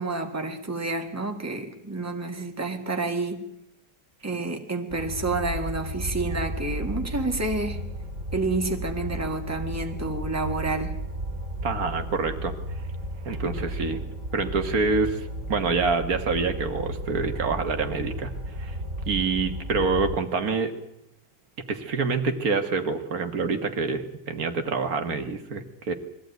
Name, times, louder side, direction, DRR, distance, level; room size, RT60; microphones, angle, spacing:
voice 1, 0.0-3.4 4.2-7.8 8.3-10.9, right 2 dB, 10° right, 4 dB, 1.8 m, -29 dB
sound 1, 4.9-20.2, equal, 50° right, 3.0 m, -34 dB
voice 2, 11.6-12.5 13.3-14.0 14.3-18.3 18.6-18.8 19.1-20.7 21.7-25.9, right 4 dB, 70° right, 6 dB, 1.9 m, -26 dB
21.5 x 15.0 x 9.3 m, 0.80 s
omnidirectional pair, 1.6 m